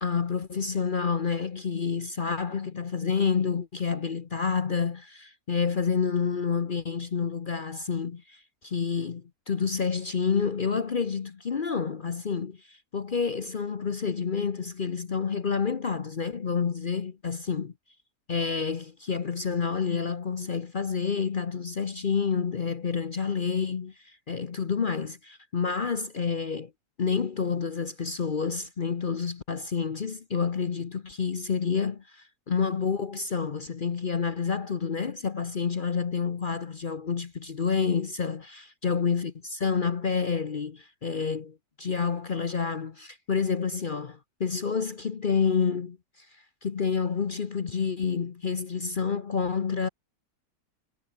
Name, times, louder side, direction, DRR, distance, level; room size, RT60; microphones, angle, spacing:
voice 1, 0.0-17.7 18.3-26.7 27.0-46.3 46.6-49.9, left 6 dB, 45° left, 0.7 m, -29 dB
omnidirectional pair, 1.8 m